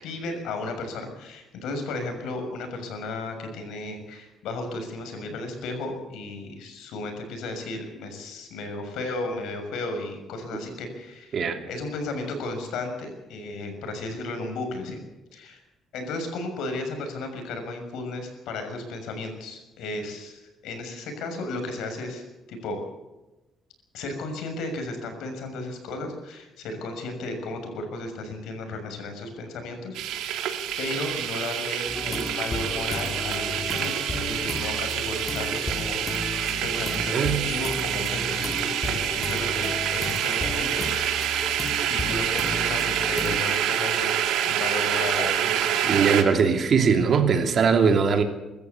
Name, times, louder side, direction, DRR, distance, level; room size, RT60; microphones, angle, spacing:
voice 1, 0.0-11.3 11.7-15.0 15.3-15.6 15.9-22.8 23.9-30.3 30.8-40.9 41.9-46.0, left 2 dB, 85° left, 5 dB, 6.5 m, -34 dB
sound 1, 29.9-46.2, right 10 dB, 90° right, 2.7 m, -27 dB
sound 2, 31.9-43.4, left 3 dB, 25° left, 2.1 m, -34 dB
voice 2, 45.9-48.2, right 6 dB, 45° right, 5 dB, 2.9 m, -20 dB
24.0 x 14.0 x 8.4 m, 1.0 s
cardioid pair, 135°, 0 cm